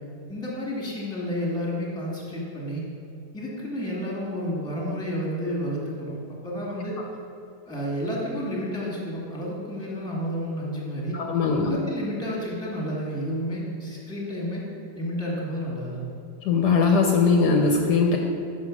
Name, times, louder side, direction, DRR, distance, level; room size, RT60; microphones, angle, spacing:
voice 1, 0.3-2.9 3.3-7.0 7.7-11.2 11.6-14.6 14.9-16.0, equal, 5° left, -4 dB, 1.1 m, -31 dB
voice 2, 11.1-11.8 16.4-18.2, left 4 dB, 75° left, 2 dB, 1.1 m, -20 dB
5.8 x 4.9 x 6.1 m, 2.5 s
omnidirectional pair, 2.0 m